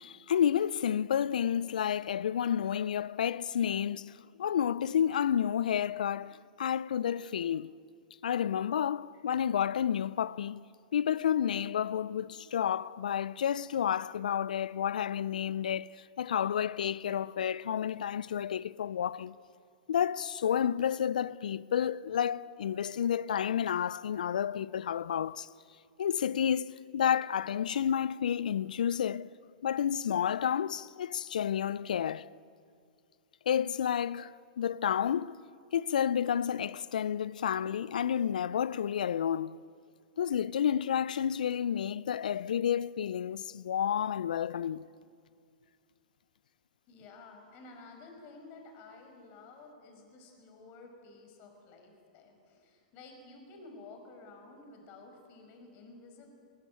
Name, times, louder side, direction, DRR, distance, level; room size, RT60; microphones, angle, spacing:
voice 1, 0.0-7.7 8.2-10.6 10.9-19.3 19.9-25.5 26.0-29.3 29.6-32.3 33.5-35.4 35.7-39.6 40.2-44.9, left 9 dB, 70° left, 0.5 m, -30 dB
voice 2, 46.9-56.3, left 3 dB, 40° left, 5.3 m, -52 dB
20.5 x 19.0 x 9.0 m
figure-of-eight pair, 105°, 5 cm